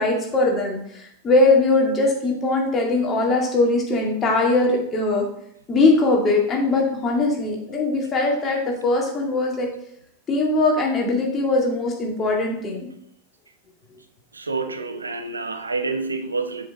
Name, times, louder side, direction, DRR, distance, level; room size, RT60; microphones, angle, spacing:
voice 1, 0.0-5.2 5.7-9.7 10.3-12.9, left 2 dB, 20° left, -1 dB, 2.3 m, -21 dB
voice 2, 14.3-16.7, right 3 dB, 80° right, 8 dB, 0.8 m, -28 dB
7.5 x 6.5 x 4.1 m, 0.71 s
figure-of-eight pair, 90°, 0 cm